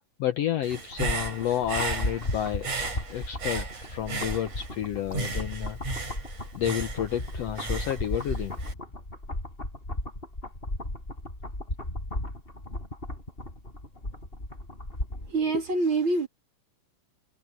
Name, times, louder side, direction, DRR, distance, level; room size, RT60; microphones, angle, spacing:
voice 1, 0.2-5.8 6.6-8.5, left 11 dB, 70° left, 1.7 m, -30 dB
Human voice / Breathing, 0.6-4.8 5.1-8.7, right 4 dB, 65° right, 6.7 m, -35 dB
sound 1, 0.7-15.4 15.7-15.8, left 1 dB, 15° left, 6.6 m, -35 dB
voice 2, 15.3-16.3, right 3 dB, 40° right, 3.2 m, -25 dB
omnidirectional pair, 3.7 m